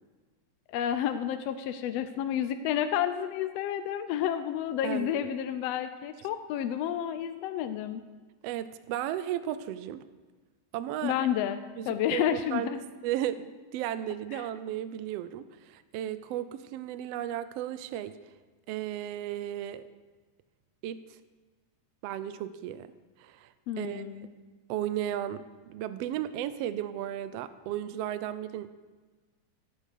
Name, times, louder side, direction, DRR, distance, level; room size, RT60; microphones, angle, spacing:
voice 1, 0.7-8.0 11.0-11.6 11.9-12.8 14.3-14.4 23.7-24.3, left 10 dB, 75° left, 9 dB, 1.5 m, -30 dB
voice 2, 4.8-5.3 8.4-10.0 10.7-11.2 11.8-18.2 18.7-19.9 20.8-21.0 22.0-22.9 23.2-24.3 24.7-25.4 25.7-28.8, right 11 dB, 80° right, 13 dB, 1.4 m, -35 dB
16.5 x 9.2 x 6.6 m, 1.3 s
omnidirectional pair, 3.4 m